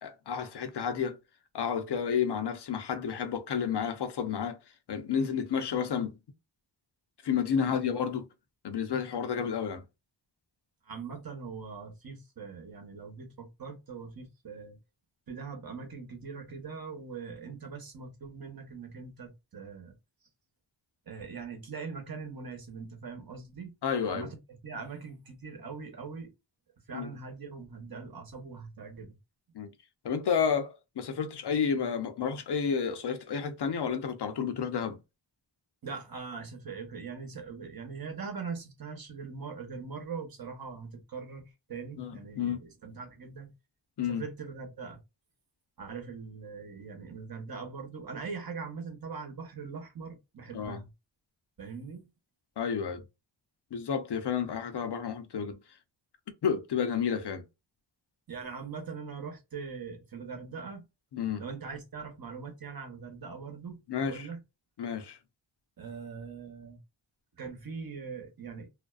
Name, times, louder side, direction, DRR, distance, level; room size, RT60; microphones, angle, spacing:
voice 1, 0.0-1.2 1.5-4.6 4.9-6.1 7.2-8.3 8.6-9.8 23.8-24.3 26.9-27.1 29.5-29.7 30.0-35.0 42.0-42.6 44.0-44.2 50.5-50.8 52.6-53.0 53.7-55.6 56.4-57.4 61.1-61.4 63.9-64.3 64.8-65.2, left 7 dB, 60° left, 0.6 m, -31 dB
voice 2, 7.6-7.9 10.8-14.8 15.3-20.0 21.1-23.7 24.1-24.4 24.6-26.3 26.9-29.2 35.8-43.5 44.1-45.0 45.8-50.9 51.6-52.0 58.3-60.8 61.4-64.4 65.8-66.8 67.4-68.7, right 5 dB, 50° right, 0.9 m, -41 dB
2.5 x 2.1 x 2.3 m
cardioid pair, 60°, 47 cm